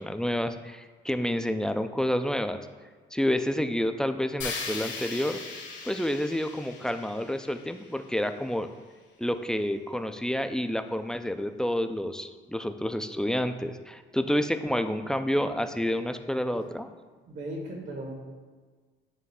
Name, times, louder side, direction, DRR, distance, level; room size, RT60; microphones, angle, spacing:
voice 1, 0.0-2.6 3.1-5.4 5.9-8.7 9.2-16.9, equal, 5° left, 8 dB, 0.3 m, -29 dB
sound 1, 4.4-8.5, left 4 dB, 65° left, 1.2 m, -39 dB
voice 2, 15.0-15.4 17.2-18.1, right 1 dB, 70° right, 0 dB, 1.6 m, -38 dB
9.2 x 3.2 x 3.6 m, 1.4 s
cardioid pair, 90°, 20 cm